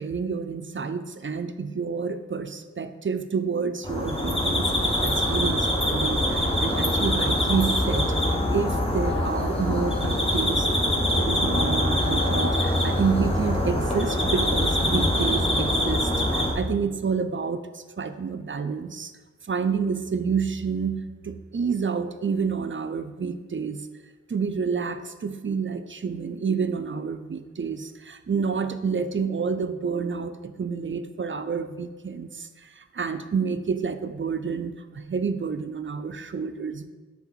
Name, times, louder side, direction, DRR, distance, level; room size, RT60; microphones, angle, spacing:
voice 1, 0.0-8.1 8.5-10.7 11.2-19.1 19.4-23.9 24.3-36.9, right 5 dB, 45° right, 10 dB, 0.4 m, -29 dB
sound 1, 3.8-16.5, left 1 dB, 20° left, 1.0 m, -24 dB
7.2 x 3.9 x 4.0 m, 1.3 s
wide cardioid pair, 60°, 29 cm